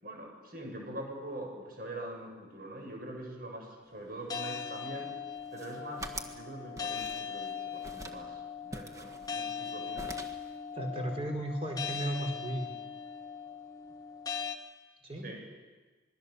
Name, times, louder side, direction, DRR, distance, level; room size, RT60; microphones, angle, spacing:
voice 1, 0.0-5.1 5.5-10.2 15.2-15.4, right 1 dB, 50° right, 1 dB, 7.3 m, -43 dB
sound 1, 4.3-14.6, left 7 dB, 20° left, 1.3 m, -40 dB
sound 2, 5.4-6.4 6.8-7.5 7.8-8.2 8.7-9.7 10.0-10.5, right 2 dB, 20° right, 1.7 m, -44 dB
voice 2, 10.7-12.7 15.0-15.2, right 1 dB, 35° right, 2 dB, 4.8 m, -35 dB
27.0 x 22.0 x 7.2 m, 1.3 s
head